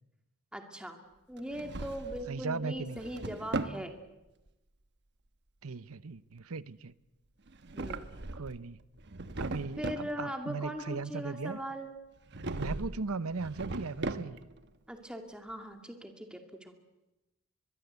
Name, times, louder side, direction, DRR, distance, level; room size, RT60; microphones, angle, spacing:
voice 1, 0.5-1.0 1.3-3.9 7.7-8.1 9.8-11.9 14.9-16.7, equal, 5° right, 5 dB, 2.3 m, -40 dB
Drawer open or close, 1.4-2.3 2.8-3.8 7.5-8.6 9.0-10.1 12.3-13.0 13.3-14.6, right 2 dB, 50° right, 1.1 m, -38 dB
voice 2, 2.3-3.0 5.6-6.9 8.3-8.8 9.4-11.6 12.6-14.4, right 4 dB, 75° right, 17 dB, 0.8 m, -37 dB
23.0 x 22.5 x 8.2 m, 0.99 s
head